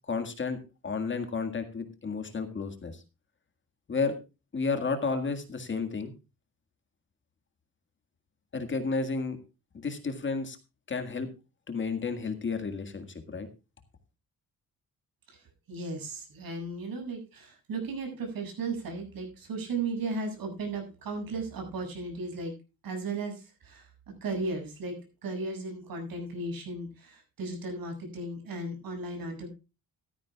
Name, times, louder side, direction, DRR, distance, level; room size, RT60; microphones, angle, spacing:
voice 1, 0.1-3.0 3.9-4.2 4.5-6.1 8.5-9.4 9.7-10.6 10.9-11.3 11.7-13.5, left 4 dB, 35° left, 7 dB, 1.8 m, -32 dB
voice 2, 15.3-22.5 22.8-24.9 25.2-29.5, right 3 dB, 75° right, 3 dB, 6.8 m, -36 dB
16.0 x 13.0 x 2.3 m, 0.30 s
wide cardioid pair, 175°, 35 cm